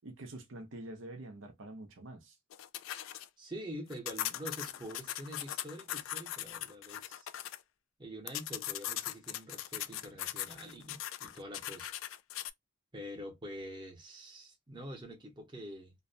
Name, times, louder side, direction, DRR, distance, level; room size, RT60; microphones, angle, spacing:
voice 1, 0.0-2.4, right 1 dB, 70° right, 0.7 m, -46 dB
sound 1, 2.5-3.3 3.9-7.6 8.3-12.5, left 12 dB, 80° left, 0.3 m, -40 dB
voice 2, 3.4-7.3 8.0-11.9 12.9-15.9, equal, 25° right, 0.9 m, -46 dB
2.6 x 2.2 x 2.6 m
head